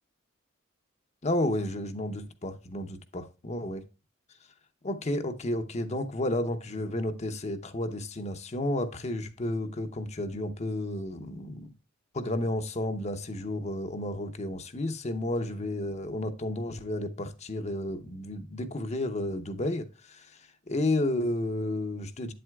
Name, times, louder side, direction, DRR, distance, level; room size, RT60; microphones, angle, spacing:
voice 1, 1.2-3.8 4.8-11.7 12.1-22.3, left 1 dB, 35° left, 0.8 m, -32 dB
8.6 x 7.7 x 2.3 m
head